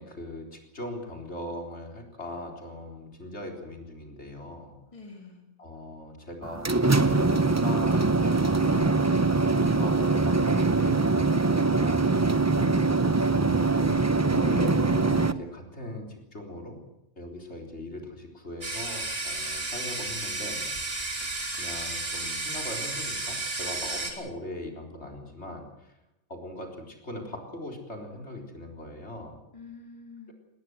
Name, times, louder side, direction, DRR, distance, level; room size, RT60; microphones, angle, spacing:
voice 1, 0.0-4.7 5.6-12.1 13.3-16.8 17.2-20.7 21.6-25.9 26.3-29.4, left 1 dB, 60° left, 2 dB, 4.2 m, -40 dB
voice 2, 4.9-5.4 29.5-30.3, left 4 dB, 25° left, 2 dB, 2.5 m, -46 dB
sound 1, 6.4-15.3, right 3 dB, 20° right, 0.6 m, -23 dB
sound 2, 18.6-24.1, right 2 dB, 50° right, 3.8 m, -32 dB
20.5 x 19.0 x 7.8 m, 0.90 s
omnidirectional pair, 1.3 m